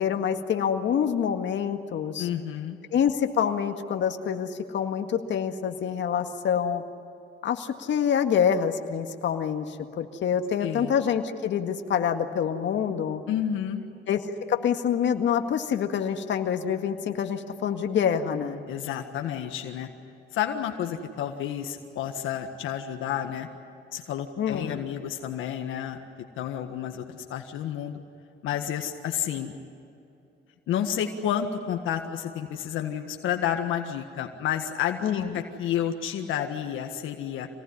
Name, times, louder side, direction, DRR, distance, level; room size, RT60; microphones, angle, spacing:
voice 1, 0.0-2.3 2.9-6.8 7.4-13.2 14.1-18.6 24.4-24.8 35.0-35.4, left 8 dB, 65° left, 5 dB, 1.9 m, -26 dB
voice 2, 2.2-2.8 10.6-10.9 13.3-13.8 18.7-19.9 20.3-23.5 23.9-26.0 26.4-28.0 28.4-29.5 30.7-37.5, left 9 dB, 90° left, 4 dB, 1.7 m, -30 dB
26.5 x 19.0 x 9.9 m, 2.7 s
cardioid pair, 90°, 20 cm